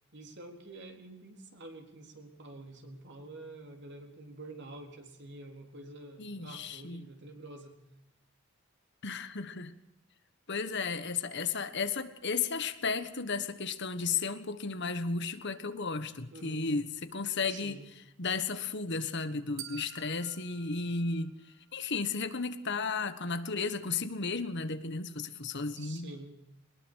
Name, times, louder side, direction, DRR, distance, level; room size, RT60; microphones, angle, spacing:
voice 1, 0.1-7.8 16.3-16.6 17.5-17.9 25.8-26.3, right 2 dB, 55° right, 3 dB, 4.0 m, -48 dB
voice 2, 6.2-7.0 9.0-9.7 10.5-17.8 18.2-21.3 21.7-26.1, left 4 dB, 55° left, 11 dB, 1.5 m, -34 dB
sound 1, 19.6-21.8, right 12 dB, 75° right, 2.2 m, -49 dB
22.5 x 20.0 x 6.5 m, 0.83 s
head